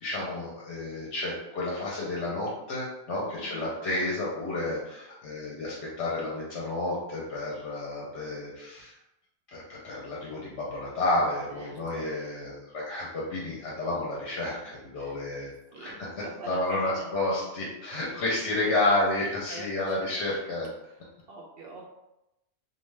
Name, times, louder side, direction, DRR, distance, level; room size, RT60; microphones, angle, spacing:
voice 1, 0.0-8.9 9.5-16.1 16.5-20.7, left 2 dB, 60° left, -4 dB, 0.9 m, -31 dB
voice 2, 3.4-3.7 4.0-4.1 11.5-11.7 15.0-15.2 15.7-17.1 18.6-20.5 20.9-21.0 21.3-21.8, right 2 dB, 65° right, -1 dB, 0.6 m, -44 dB
2.5 x 2.3 x 3.1 m, 0.92 s
omnidirectional pair, 1.4 m